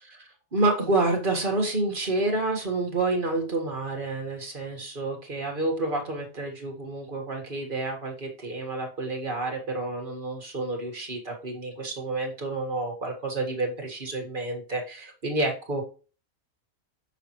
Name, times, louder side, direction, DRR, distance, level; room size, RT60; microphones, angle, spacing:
voice 1, 0.1-15.8, right 2 dB, 40° right, 1 dB, 1.8 m, -29 dB
6.7 x 5.8 x 3.0 m, 0.36 s
omnidirectional pair, 1.4 m